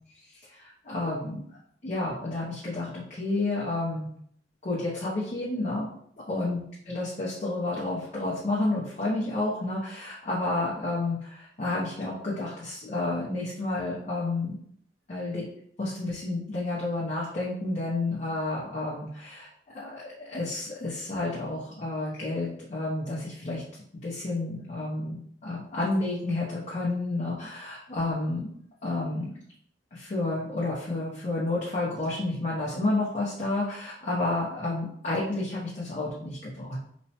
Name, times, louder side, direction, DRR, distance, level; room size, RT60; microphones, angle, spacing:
voice 1, 0.1-1.4 1.8-4.1 4.6-5.9 6.3-14.6 15.1-15.5 15.8-19.5 19.7-23.6 24.0-28.5 28.8-29.3 29.9-36.8, left 2 dB, 40° left, -7 dB, 0.6 m, -30 dB
3.0 x 2.1 x 2.8 m, 0.66 s
head